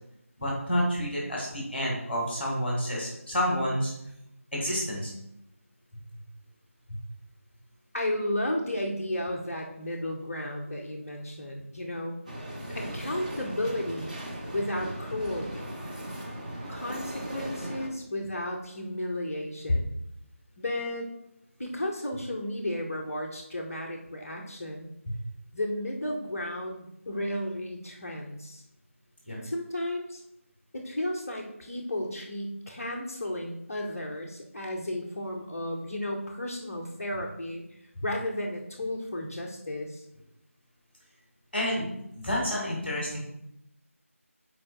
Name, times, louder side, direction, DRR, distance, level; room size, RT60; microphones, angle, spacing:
voice 1, 0.4-3.9 4.5-5.1 12.6-12.8 29.3-29.4 41.5-41.9 42.1-43.2, equal, ahead, -4 dB, 1.6 m, -29 dB
voice 2, 7.9-12.2 12.7-14.2 14.5-15.8 16.7-19.9 20.6-21.1 21.6-24.9 25.5-28.6 29.3-30.2 30.7-37.6 38.0-40.0, left 1 dB, 15° left, -4 dB, 0.5 m, -33 dB
sound 1, 12.3-17.9, right 1 dB, 35° right, 1.0 m, -38 dB
9.7 x 4.4 x 2.7 m, 0.81 s
figure-of-eight pair, 165°, 8 cm